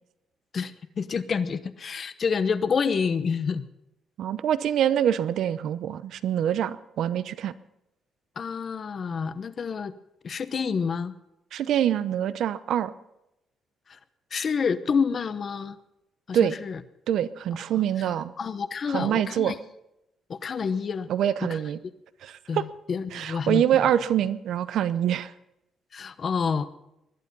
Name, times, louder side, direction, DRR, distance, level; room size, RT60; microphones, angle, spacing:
voice 1, 0.5-3.7 8.4-9.9 10.2-11.1 13.9-14.0 14.3-15.8 16.3-16.8 18.4-19.5 20.3-21.1 21.4-21.6 22.5-23.6 25.9-26.7, left 5 dB, 40° left, 13 dB, 0.9 m, -28 dB
voice 2, 4.2-7.5 11.5-12.9 16.3-16.6 17.1-18.3 18.9-19.5 21.1-21.8 22.2-22.6 23.1-25.3, right 10 dB, 70° right, 15 dB, 0.7 m, -25 dB
20.0 x 12.0 x 5.4 m, 0.86 s
cardioid pair, 125°, 0 cm